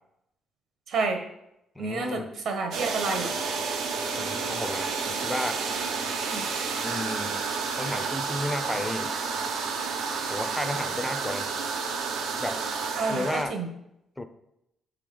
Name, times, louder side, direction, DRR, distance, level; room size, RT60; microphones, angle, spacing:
voice 1, 0.9-1.2 1.8-3.3 6.2-6.5 13.0-13.7, right 4 dB, 60° right, 5 dB, 1.2 m, -29 dB
voice 2, 1.8-2.3 4.2-5.6 6.8-7.4 7.8-9.2 10.3-11.5 12.4-12.6 13.1-13.6 14.2-14.3, left 1 dB, 5° left, 7 dB, 0.5 m, -32 dB
sound 1, 2.7-13.4, right 5 dB, 85° right, 0.9 m, -30 dB
7.7 x 3.8 x 5.0 m, 0.82 s
cardioid pair, 155°, 0 cm